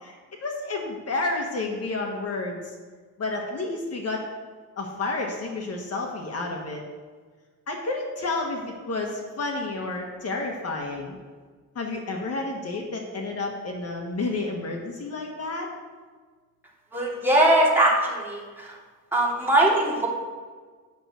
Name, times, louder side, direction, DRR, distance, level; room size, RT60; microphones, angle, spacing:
voice 1, 0.0-2.6 3.2-4.2 4.8-6.8 7.7-11.2 11.7-15.7, left 3 dB, 50° left, 1 dB, 1.4 m, -30 dB
voice 2, 16.9-18.7 19.1-20.1, right 1 dB, 5° right, -5 dB, 2.8 m, -21 dB
9.0 x 6.3 x 8.0 m, 1.5 s
wide cardioid pair, 145°, 31 cm